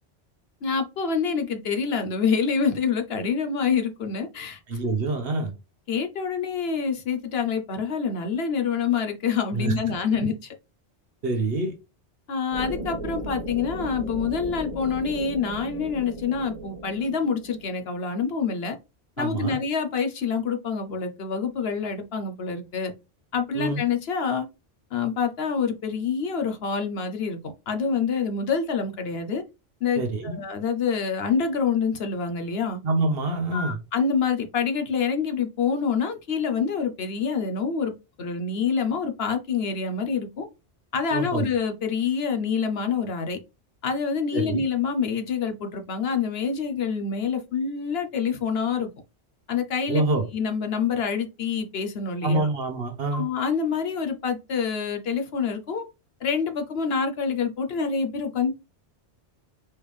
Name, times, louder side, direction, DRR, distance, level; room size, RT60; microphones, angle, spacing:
voice 1, 0.6-4.9 5.9-10.3 12.3-18.8 19.2-22.9 23.3-24.4 24.9-29.4 29.8-32.8 33.5-37.9 38.2-40.5 40.9-43.4 43.8-48.9 49.5-50.0 50.3-52.5 53.1-55.8 56.2-58.6, left 6 dB, 65° left, 7 dB, 1.0 m, -26 dB
voice 2, 4.7-5.5 9.5-9.7 11.2-11.7 19.2-19.6 23.5-23.8 30.0-30.3 32.8-33.7 41.1-41.5 44.3-44.6 49.9-50.2 52.2-53.3, right 2 dB, 60° right, 4 dB, 1.2 m, -26 dB
sound 1, 12.5-18.0, right 1 dB, 30° right, 1.2 m, -36 dB
4.4 x 3.4 x 3.3 m, 0.26 s
omnidirectional pair, 1.2 m